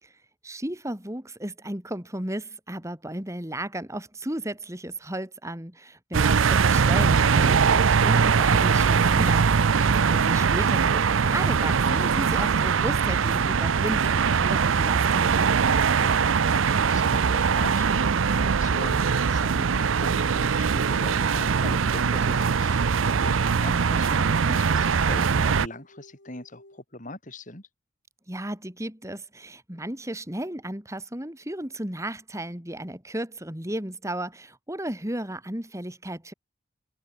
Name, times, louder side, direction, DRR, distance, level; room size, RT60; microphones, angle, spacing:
voice 1, 0.0-15.5 28.3-36.3, right 1 dB, 15° right, 3.0 m, -34 dB
sound 1, 6.1-25.7, right 6 dB, 90° right, 0.6 m, -22 dB
sound 2, 8.8-26.8, left 1 dB, 60° left, 4.6 m, -53 dB
voice 2, 9.8-10.3 15.8-27.7, left 2 dB, 40° left, 6.2 m, -41 dB
head